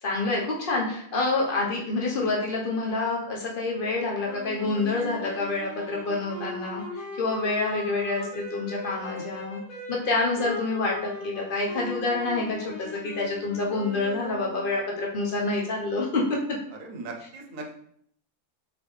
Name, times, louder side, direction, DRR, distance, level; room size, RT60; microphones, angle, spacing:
voice 1, 0.0-9.6 9.9-16.4, left 3 dB, 45° left, -2 dB, 1.0 m, -27 dB
sound 1, 4.2-14.7, left 3 dB, 80° left, 1.5 m, -39 dB
voice 2, 16.7-17.8, right 3 dB, 70° right, 3 dB, 1.1 m, -39 dB
3.9 x 3.6 x 3.2 m, 0.66 s
omnidirectional pair, 1.5 m